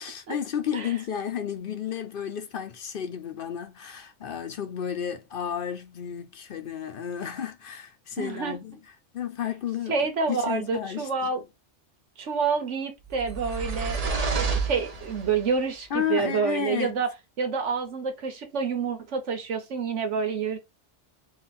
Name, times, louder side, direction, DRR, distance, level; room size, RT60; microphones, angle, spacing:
voice 1, 0.0-8.8 9.1-9.9 10.3-11.3 15.9-16.9, left 9 dB, 55° left, 0.7 m, -32 dB
voice 2, 8.2-8.6 9.9-11.4 12.2-17.1 17.4-20.6, right 5 dB, 85° right, 1.4 m, -28 dB
sound 1, 13.1-15.5, right 5 dB, 40° right, 0.7 m, -29 dB
3.9 x 2.5 x 4.1 m
omnidirectional pair, 1.2 m